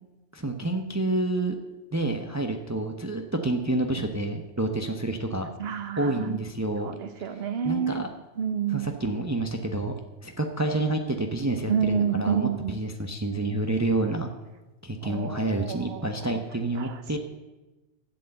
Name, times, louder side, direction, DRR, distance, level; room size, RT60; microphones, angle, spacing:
voice 1, 0.3-1.6 1.9-5.5 6.0-6.9 7.3-8.1 8.7-9.9 10.2-14.3 14.8-17.2, right 2 dB, 15° right, 4 dB, 0.8 m, -28 dB
voice 2, 5.6-6.4 6.8-8.0 8.4-8.9 11.7-12.7 15.0-16.2 16.8-16.9, right 7 dB, 65° right, 10 dB, 1.2 m, -28 dB
11.5 x 8.4 x 7.8 m, 1.1 s
omnidirectional pair, 1.1 m